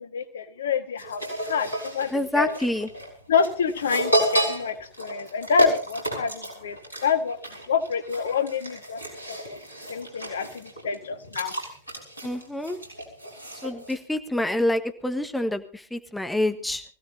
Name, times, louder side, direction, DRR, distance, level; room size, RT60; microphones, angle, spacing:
voice 1, 0.0-2.5 3.3-7.4 7.7-9.0 9.3-9.6 9.9-11.5, left 6 dB, 65° left, 9 dB, 1.5 m, -27 dB
sound 1, 1.0-14.0, right 1 dB, 85° left, 4.9 m, -30 dB
voice 2, 2.1-2.9 12.2-12.8 13.6-16.8, left 1 dB, 5° left, 8 dB, 1.4 m, -27 dB
24.0 x 16.0 x 2.7 m, 0.38 s
figure-of-eight pair, 90°, 0 cm